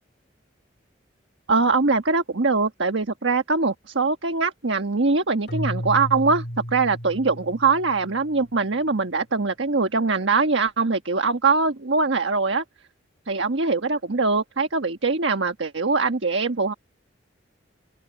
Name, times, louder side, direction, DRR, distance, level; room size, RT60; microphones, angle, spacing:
voice 1, 1.5-6.4 6.7-12.6 13.3-16.7, right 4 dB, 75° right, 1.3 m, -22 dB
Keyboard (musical), 5.5-8.6, equal, 60° left, 4.5 m, -33 dB
open air
head